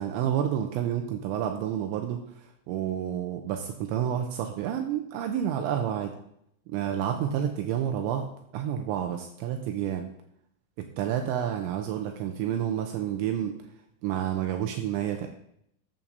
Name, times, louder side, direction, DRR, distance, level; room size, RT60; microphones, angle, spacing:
voice 1, 0.0-6.1 6.7-10.1 10.8-13.6 14.0-15.3, right 10 dB, 85° right, 4 dB, 2.9 m, -29 dB
14.5 x 7.3 x 2.7 m, 0.73 s
omnidirectional pair, 5.3 m